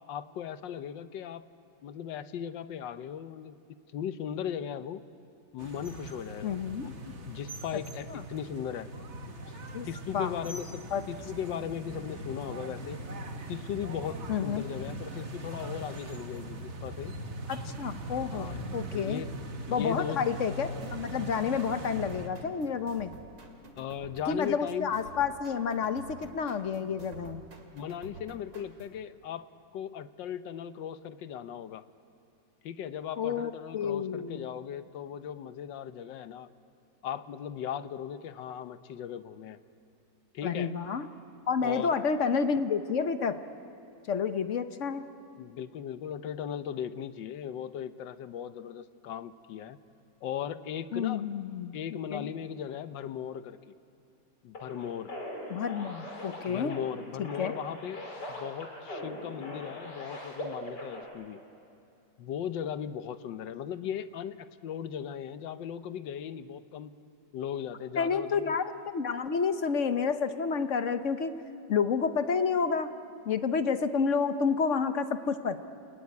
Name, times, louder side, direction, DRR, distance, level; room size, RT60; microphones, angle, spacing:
voice 1, 0.1-1.4 1.8-5.0 5.5-8.9 9.5-9.6 9.8-13.0 13.5-17.1 18.3-18.6 18.9-19.3 19.7-20.2 23.8-24.9 27.7-31.8 32.6-36.5 37.0-39.6 40.3-40.7 41.6-41.9 45.4-49.8 50.2-51.2 51.7-53.7 54.4-55.1 56.5-58.0 58.3-61.4 62.2-66.9 67.3-68.5, left 9 dB, 85° left, 12 dB, 1.6 m, -38 dB
sound 1, 5.6-22.3, right 1 dB, 40° right, 1.7 m, -40 dB
voice 2, 6.4-6.9 8.1-8.2 9.7-9.9 10.1-10.3 10.9-11.0 14.3-14.6 17.5-19.2 19.7-23.1 24.3-27.4 33.2-34.4 40.4-41.1 41.5-43.4 44.1-45.0 50.9-51.8 52.1-52.3 55.5-56.8 57.2-57.5 68.0-71.3 71.7-72.9 73.2-75.6, left 6 dB, 50° left, 10 dB, 1.1 m, -30 dB
sound 2, 20.8-29.0, right 4 dB, 85° right, 3.0 m, -50 dB
sound 3, 54.5-61.0, left 1 dB, 70° left, 4.7 m, -41 dB
29.0 x 19.5 x 9.7 m, 2.6 s
omnidirectional pair, 1.9 m